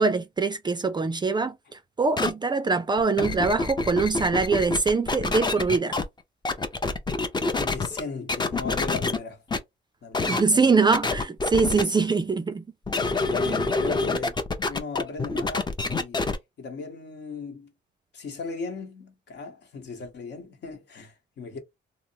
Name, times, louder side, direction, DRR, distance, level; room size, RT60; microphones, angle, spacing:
voice 1, 0.0-6.0 10.3-12.6 13.5-13.6, right 4 dB, 20° right, 0.4 m, -23 dB
sound 1, 2.2-2.3 3.0-6.0 6.4-8.0 8.3-9.2 9.5-9.6 10.1-10.4 10.9-11.8 12.9-16.4, left 3 dB, 20° left, 0.6 m, -26 dB
voice 2, 7.5-9.4 10.0-10.8 11.7-12.1 13.0-16.2 16.6-17.7 18.1-21.6, left 4 dB, 60° left, 1.1 m, -37 dB
3.0 x 2.0 x 2.7 m
cardioid pair, 90°, 20 cm